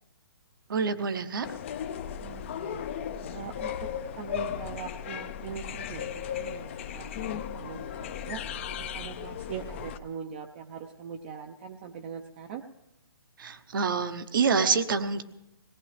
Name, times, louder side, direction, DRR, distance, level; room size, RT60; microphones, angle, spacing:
voice 1, 0.7-1.5 13.4-15.2, right 5 dB, 60° right, 10 dB, 0.9 m, -27 dB
sound 1, 1.4-10.0, left 8 dB, 30° left, 0.5 m, -36 dB
voice 2, 2.2-2.8 3.3-8.4 8.7-12.6, right 7 dB, 25° right, 4 dB, 0.5 m, -41 dB
18.5 x 17.5 x 3.3 m, 0.93 s
hypercardioid pair, 160°, 13 cm